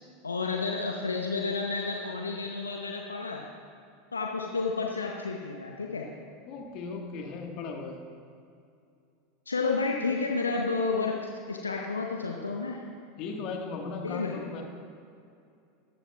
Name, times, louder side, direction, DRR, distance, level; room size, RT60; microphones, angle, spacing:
voice 1, 0.2-3.5 4.1-6.1 9.5-12.8 14.0-14.4, left 4 dB, 85° left, 1 dB, 0.8 m, -31 dB
voice 2, 6.5-8.0 13.2-14.6, left 4 dB, 50° left, 2 dB, 1.6 m, -37 dB
13.5 x 13.0 x 2.4 m, 2.5 s
figure-of-eight pair, 80°, 0 cm